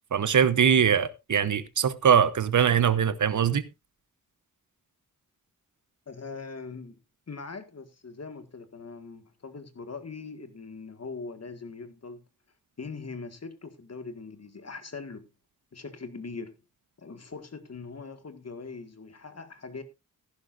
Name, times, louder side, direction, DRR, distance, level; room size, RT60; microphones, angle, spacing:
voice 1, 0.1-3.6, right 8 dB, 60° right, 0.9 m, -22 dB
voice 2, 6.1-7.0 7.3-12.2 12.8-15.2 15.7-16.5 17.0-19.8, left 4 dB, 45° left, 1.8 m, -41 dB
15.0 x 11.0 x 2.5 m
wide cardioid pair, 85°, 34 cm